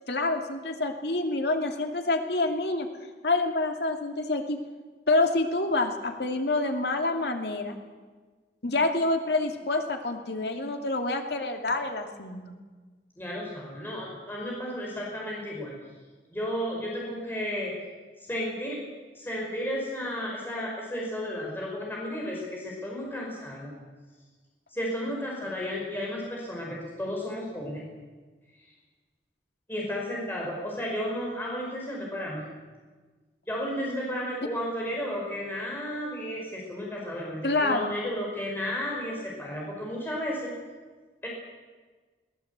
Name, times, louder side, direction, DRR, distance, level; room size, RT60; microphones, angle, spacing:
voice 1, 0.1-2.9 3.2-4.6 5.1-7.7 8.6-12.5 37.4-37.9, left 2 dB, 70° left, 4 dB, 2.6 m, -27 dB
voice 2, 13.2-15.8 16.3-17.7 18.2-18.8 19.1-23.7 24.7-27.8 29.7-32.4 33.5-40.5 41.2-41.3, equal, 10° left, -3 dB, 5.0 m, -33 dB
22.5 x 19.0 x 8.2 m, 1.4 s
head